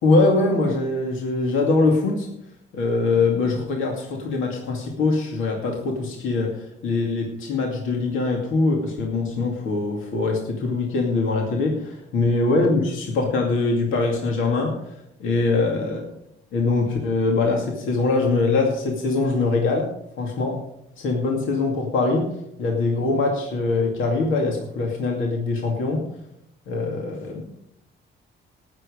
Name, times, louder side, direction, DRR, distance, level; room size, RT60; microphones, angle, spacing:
voice 1, 0.0-2.3 2.7-16.0 16.5-19.9 20.2-20.6 21.0-22.3 22.6-26.0 26.7-27.4, left 3 dB, 85° left, 0 dB, 2.4 m, -23 dB
18.5 x 7.7 x 5.1 m, 0.79 s
cardioid pair, 90°, 20 cm